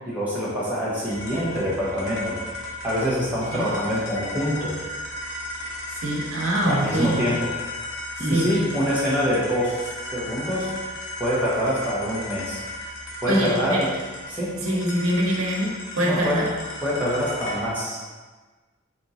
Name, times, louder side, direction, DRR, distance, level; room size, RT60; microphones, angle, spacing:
voice 1, 0.1-2.4 2.8-4.7 6.6-7.4 8.2-10.7 11.2-12.6 13.2-13.9 14.3-14.5 16.0-16.4 16.8-18.0, equal, 10° right, -9 dB, 1.2 m, -25 dB
sound 1, 1.1-17.7, left 1 dB, 70° left, 1.0 m, -35 dB
voice 2, 5.9-7.3 8.3-8.6 13.3-13.8 14.6-16.4, right 1 dB, 85° right, -3 dB, 1.0 m, -24 dB
3.5 x 3.0 x 4.0 m, 1.3 s
head